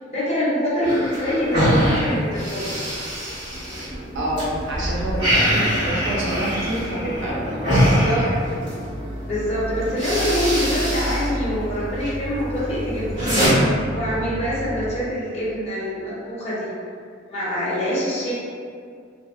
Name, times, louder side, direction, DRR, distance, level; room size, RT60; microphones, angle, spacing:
voice 1, 0.1-2.7 7.6-8.2 9.3-13.5 13.9-16.7 17.3-18.3, equal, 35° left, -9 dB, 0.6 m, -25 dB
sound 1, 0.8-4.4 4.8-8.8 9.5-9.6 9.9-11.3 11.6-12.1 12.6-13.5, equal, 65° right, 1.4 m, -23 dB
sound 2, 1.2-1.3 1.8-2.2 2.5-2.6 3.0-3.1 3.3-14.9, equal, 35° right, 0.3 m, -32 dB
voice 2, 4.1-8.5, right 1 dB, 85° right, -5 dB, 0.6 m, -28 dB
2.6 x 2.0 x 2.3 m, 2.2 s
head